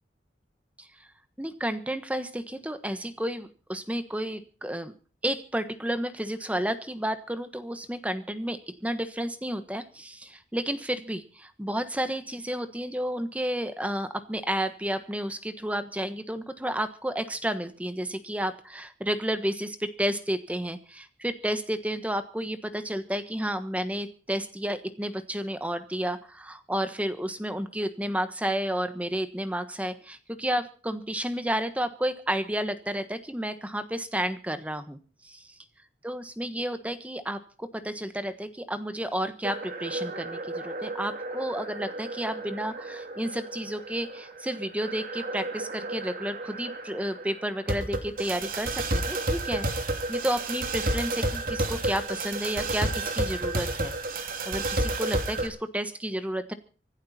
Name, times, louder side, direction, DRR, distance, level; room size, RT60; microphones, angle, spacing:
voice 1, 1.4-4.9 5.2-35.0 35.2-35.5 36.0-49.7 50.1-53.9 54.2-56.5, equal, 10° right, 10 dB, 1.2 m, -31 dB
sound 1, 39.4-55.5, right 2 dB, 50° right, 2.8 m, -32 dB
25.0 x 11.5 x 4.3 m, 0.39 s
head